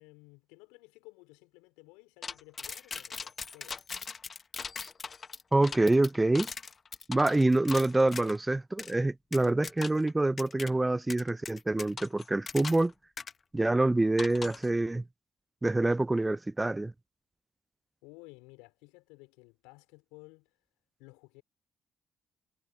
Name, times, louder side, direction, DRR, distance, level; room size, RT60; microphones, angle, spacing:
voice 1, 0.0-3.8 18.0-20.5 21.0-21.4, left 27 dB, 80° left, 4.5 m, -55 dB
sound 1, 2.2-8.4 8.8-8.9 9.3-10.1 10.4-10.7 11.1-12.9 13.2-13.3 14.2-14.7, left 5 dB, 45° left, 0.9 m, -40 dB
voice 2, 5.5-6.5 7.1-12.9 13.5-15.0 15.6-16.9, right 2 dB, 20° right, 0.6 m, -26 dB
hypercardioid pair, 45°, 0 cm